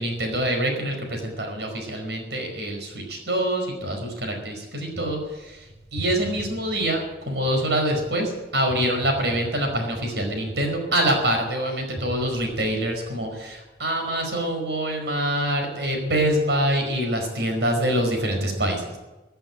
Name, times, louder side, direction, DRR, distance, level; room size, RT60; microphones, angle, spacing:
voice 1, 0.0-5.6 5.9-7.0 7.3-19.0, right 1 dB, 75° right, 3 dB, 5.0 m, -25 dB
16.5 x 8.9 x 9.0 m, 1.1 s
head